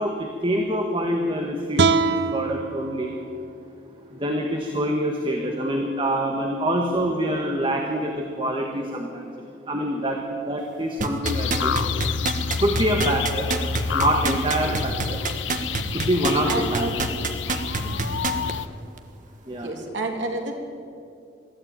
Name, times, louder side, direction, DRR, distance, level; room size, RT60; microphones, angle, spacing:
voice 1, 0.0-3.1 4.1-10.2 10.4-11.8 12.6-13.5 13.9-15.2 15.9-17.0 19.5-19.7, right 1 dB, 30° right, 2 dB, 1.7 m, -25 dB
sound 1, 1.8-4.9, right 5 dB, 65° right, 0.8 m, -26 dB
sound 2, 11.0-18.5 19.0-19.1, right 3 dB, 45° right, 1.4 m, -26 dB
sound 3, 11.2-18.7, left 6 dB, 85° left, 0.7 m, -28 dB
voice 2, 14.6-14.9 16.4-17.0 17.8-18.3 19.6-20.6, right 2 dB, 80° right, 2 dB, 3.4 m, -31 dB
22.0 x 14.5 x 9.0 m, 2.5 s
head